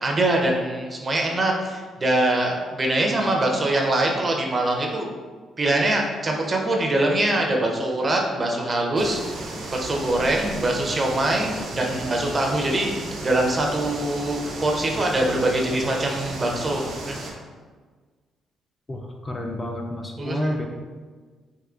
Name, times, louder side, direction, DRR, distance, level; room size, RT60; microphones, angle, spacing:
voice 1, 0.0-5.1 5.6-12.9 13.2-17.2 20.2-20.6, right 1 dB, 30° right, 1 dB, 0.5 m, -23 dB
sound 1, 9.0-17.3, right 2 dB, 75° right, 0.6 m, -34 dB
voice 2, 18.9-20.6, left 1 dB, 25° left, 1 dB, 0.3 m, -30 dB
3.7 x 2.6 x 2.3 m, 1.5 s
cardioid pair, 90°, 0 cm